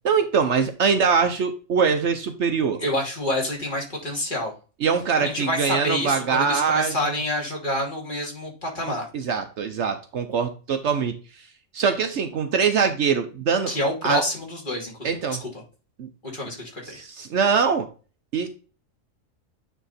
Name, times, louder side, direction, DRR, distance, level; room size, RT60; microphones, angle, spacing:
voice 1, 0.0-2.8 4.8-7.2 8.8-11.2 11.7-13.7 14.0-14.2 15.0-15.4 16.0-16.1 16.9-17.9 18.3-18.5, right 6 dB, 65° right, 7 dB, 1.0 m, -23 dB
voice 2, 2.8-4.5 5.2-9.1 13.7-15.5 16.2-17.0, left 1 dB, 35° left, -2 dB, 2.8 m, -28 dB
9.2 x 3.6 x 4.1 m, 0.35 s
omnidirectional pair, 1.4 m